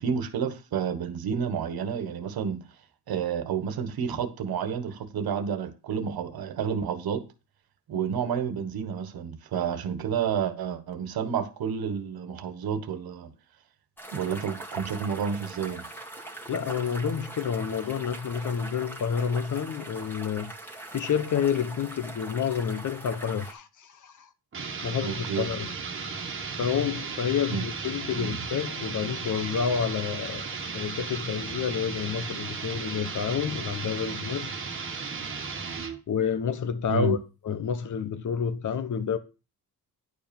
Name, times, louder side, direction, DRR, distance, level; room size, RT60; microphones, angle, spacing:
voice 1, 0.0-2.6 3.1-7.2 7.9-13.3 14.1-15.8 25.0-25.5 27.5-27.6 28.1-28.4 36.9-37.2, right 7 dB, 65° right, 1.5 m, -30 dB
sound 1, 14.0-23.5, right 2 dB, 5° left, 2.0 m, -42 dB
voice 2, 16.5-20.5 20.9-24.3 24.8-25.7 26.1-34.5 36.1-37.2 37.4-39.2, left 7 dB, 50° left, 1.1 m, -29 dB
sound 2, 24.5-36.0, right 5 dB, 30° right, 1.6 m, -35 dB
10.5 x 5.1 x 5.3 m
cardioid pair, 135°, 39 cm